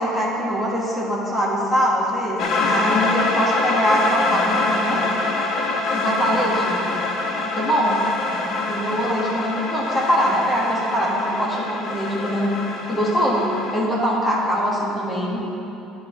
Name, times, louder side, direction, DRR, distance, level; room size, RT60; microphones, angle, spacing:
voice 1, 0.0-5.0 5.9-6.8 7.5-8.0 8.7-12.5 12.9-15.4, equal, 15° left, -5 dB, 1.6 m, -22 dB
sound 1, 2.4-13.8, left 3 dB, 60° left, 1.1 m, -25 dB
10.0 x 5.4 x 4.2 m, 2.9 s
hypercardioid pair, 70°, 0 cm